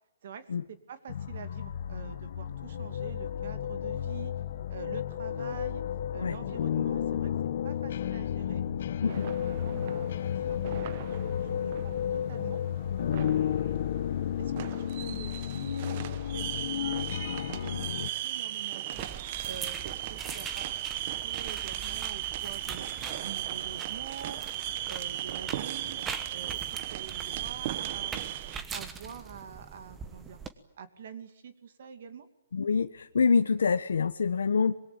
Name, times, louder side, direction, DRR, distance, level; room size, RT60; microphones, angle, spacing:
voice 1, 0.2-4.4 4.7-5.8 6.1-7.3 7.6-8.6 9.0-10.1 10.5-12.6 13.1-13.8 14.4-17.4 17.6-19.1 19.4-20.8 21.2-22.9 23.1-24.4 24.9-26.0 26.3-26.6 26.9-28.3 28.7-30.4 30.8-32.3, right 7 dB, 50° right, 9 dB, 2.5 m, -46 dB
sound 1, 1.1-18.1, left 9 dB, 50° left, 1.4 m, -32 dB
sound 2, 9.1-28.6, right 13 dB, 35° right, 1.0 m, -37 dB
sound 3, 18.9-30.5, right 5 dB, 10° right, 1.2 m, -43 dB
voice 2, 32.5-34.7, left 5 dB, 85° left, 7 dB, 1.2 m, -26 dB
25.0 x 22.0 x 8.8 m, 0.81 s
hypercardioid pair, 165°, 0 cm